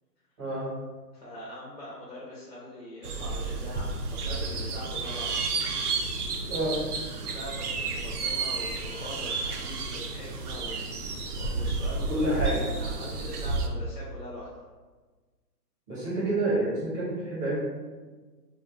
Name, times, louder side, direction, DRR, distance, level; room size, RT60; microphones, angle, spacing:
voice 1, 0.4-0.7 6.5-6.8 12.1-12.6 15.9-17.6, right 1 dB, 20° right, -9 dB, 0.8 m, -28 dB
voice 2, 1.1-5.5 7.3-14.5, left 1 dB, 40° left, -7 dB, 0.6 m, -42 dB
sound 1, 3.0-13.7, right 3 dB, 65° right, 0.6 m, -31 dB
2.3 x 2.2 x 3.7 m, 1.4 s
hypercardioid pair, 160°, 49 cm